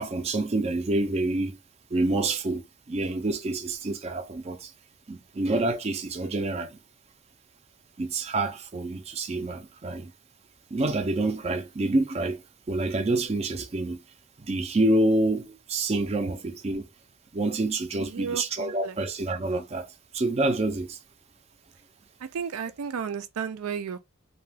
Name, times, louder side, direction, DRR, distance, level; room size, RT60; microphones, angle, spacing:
voice 1, 0.0-1.6 1.9-4.7 5.1-6.8 8.0-10.1 10.7-12.4 12.7-14.0 14.4-16.9 17.3-21.0, right 2 dB, 30° right, 0.4 m, -27 dB
voice 2, 17.9-19.0 22.2-24.0, right 7 dB, 85° right, 0.4 m, -33 dB
2.3 x 2.2 x 3.2 m
head